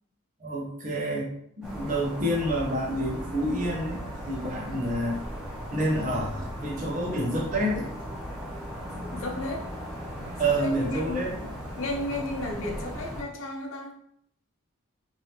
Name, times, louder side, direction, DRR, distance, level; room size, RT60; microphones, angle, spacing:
voice 1, 0.4-1.3 1.6-5.2 5.7-7.9 10.4-11.4, right 1 dB, 35° right, -2 dB, 0.8 m, -28 dB
sound 1, 1.6-13.2, equal, 5° right, 0.8 m, -37 dB
voice 2, 8.9-9.7 10.4-11.3 11.8-14.0, left 2 dB, 70° left, 1 dB, 0.7 m, -33 dB
3.3 x 2.7 x 2.8 m, 0.70 s
head